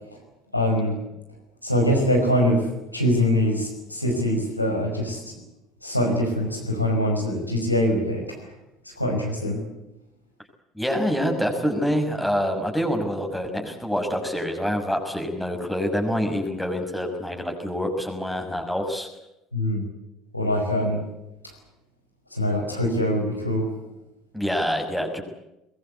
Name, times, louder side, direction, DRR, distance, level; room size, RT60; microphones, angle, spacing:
voice 1, 0.5-1.0 1.6-5.3 5.8-8.5 8.9-9.6 19.5-19.8 20.3-21.1 21.4-21.5 22.3-23.7, left 1 dB, 90° left, 1 dB, 5.1 m, -23 dB
voice 2, 10.7-19.1 24.3-25.3, equal, ahead, 3 dB, 6.2 m, -26 dB
23.0 x 22.0 x 8.3 m, 0.90 s
figure-of-eight pair, 65°, 0 cm